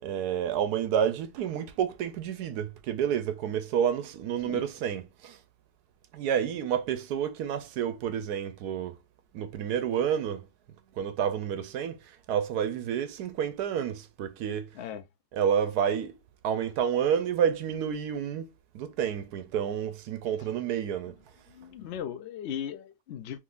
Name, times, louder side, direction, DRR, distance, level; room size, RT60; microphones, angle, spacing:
voice 1, 0.0-5.4 6.1-9.0 9.3-10.5 10.9-14.7 15.3-16.2 16.4-18.5 18.7-21.2, right 8 dB, 75° right, 1.1 m, -29 dB
voice 2, 21.5-23.4, left 9 dB, 70° left, 0.6 m, -37 dB
3.7 x 3.0 x 2.4 m
omnidirectional pair, 1.8 m